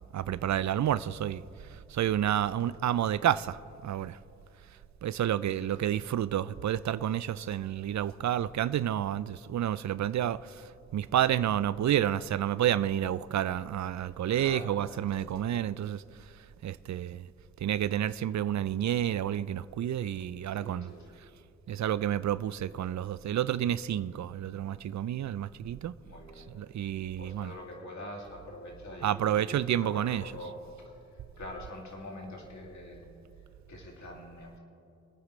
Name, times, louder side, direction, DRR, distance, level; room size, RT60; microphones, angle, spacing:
voice 1, 0.1-1.4 1.9-4.2 5.0-10.5 10.9-16.0 16.6-17.3 17.6-20.9 21.7-25.9 26.5-27.5 29.0-30.3, right 11 dB, 65° right, 0.4 m, -30 dB
voice 2, 5.6-6.1 14.3-15.1 20.5-21.3 26.0-26.5 27.2-30.6 31.4-33.1 33.7-34.6, left 1 dB, 65° left, 2.6 m, -45 dB
25.5 x 9.4 x 3.2 m
cardioid pair, 50°, 30 cm